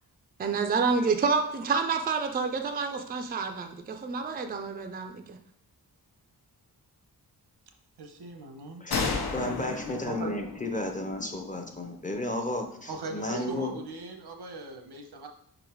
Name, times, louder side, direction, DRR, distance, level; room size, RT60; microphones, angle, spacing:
voice 1, 0.4-5.4, right 5 dB, 25° right, 5 dB, 0.4 m, -28 dB
voice 2, 8.0-8.8 10.1-10.3 12.9-15.3, right 2 dB, 85° right, 4 dB, 1.0 m, -39 dB
voice 3, 8.8-13.7, left 1 dB, 20° left, 4 dB, 0.6 m, -33 dB
sound 1, 8.9-12.4, left 4 dB, 70° left, 0.9 m, -34 dB
5.4 x 4.0 x 4.5 m, 0.71 s
wide cardioid pair, 165°, 39 cm